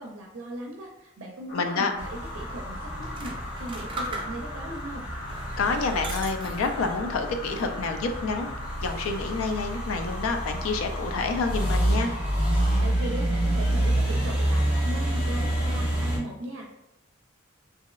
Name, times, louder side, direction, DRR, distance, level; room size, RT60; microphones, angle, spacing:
voice 1, 0.0-5.0 12.8-16.7, right 1 dB, 80° right, 1 dB, 0.4 m, -38 dB
voice 2, 1.5-1.9 5.6-8.5 8.8-12.1, left 4 dB, 90° left, 6 dB, 0.4 m, -28 dB
sound 1, 1.5-12.8, left 1 dB, 40° left, 1.2 m, -40 dB
sound 2, 2.0-16.2, right 1 dB, 10° right, 1.2 m, -28 dB
sound 3, 2.9-4.7 5.2-7.0 7.4-8.1, right 2 dB, 25° right, 0.4 m, -39 dB
3.0 x 2.7 x 2.3 m, 0.86 s
head